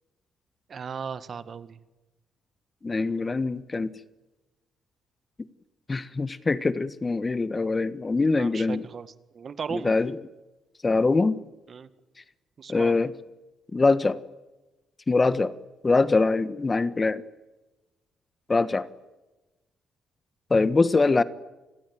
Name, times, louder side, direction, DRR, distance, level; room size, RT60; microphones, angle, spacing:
voice 1, 0.7-1.8 8.4-9.1 9.3-9.9 11.7-11.9 12.6-12.9, right 6 dB, 45° right, 13 dB, 2.0 m, -36 dB
voice 2, 2.8-3.9 5.9-8.8 9.7-10.2 10.8-11.4 12.7-13.1 13.7-14.2 15.1-15.5 15.8-17.2 18.5-18.9 20.5-21.2, left 3 dB, 25° left, 15 dB, 1.5 m, -23 dB
28.5 x 21.0 x 9.4 m, 1.1 s
cardioid pair, 90°, 0 cm